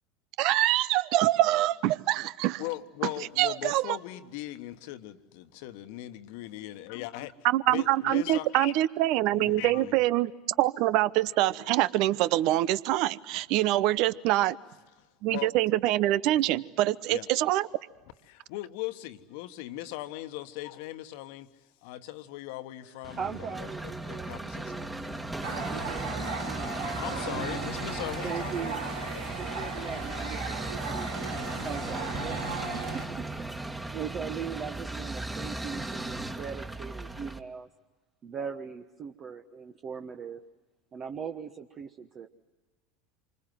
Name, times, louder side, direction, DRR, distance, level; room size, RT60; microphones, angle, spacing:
voice 1, 0.4-2.6 3.4-4.0 7.4-10.3 10.6-14.6 15.2-17.7, right 15 dB, 55° right, 0.8 m, -25 dB
voice 2, 2.6-7.3 7.7-8.7 9.3-10.0 13.3-13.4 15.0-15.5 17.1-17.3 18.3-25.3 27.0-28.7 29.1-29.2, left 15 dB, 60° left, 1.4 m, -39 dB
sound 1, 23.0-37.4, right 2 dB, 10° right, 1.8 m, -37 dB
voice 3, 23.2-24.9 25.6-27.7 28.2-28.8 29.4-31.1 31.6-33.3 33.5-37.7 38.2-40.4 40.9-42.3, right 7 dB, 40° right, 1.3 m, -40 dB
sound 2, 25.4-33.1, right 4 dB, 80° right, 3.7 m, -37 dB
28.0 x 25.5 x 7.8 m
figure-of-eight pair, 75°, 0 cm